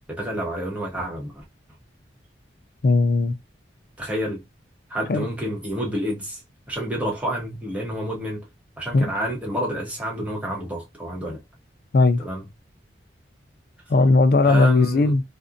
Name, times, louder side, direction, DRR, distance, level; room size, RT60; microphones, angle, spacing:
voice 1, 0.1-1.3 4.0-4.4 4.9-6.4 6.7-8.4 8.8-11.4 12.2-12.4 14.4-15.1, equal, 10° right, 0.8 m, -29 dB
voice 2, 2.8-3.4 5.1-5.3 8.9-9.1 11.9-12.2 13.9-15.2, left 3 dB, 55° left, 0.4 m, -17 dB
2.5 x 2.1 x 2.5 m
head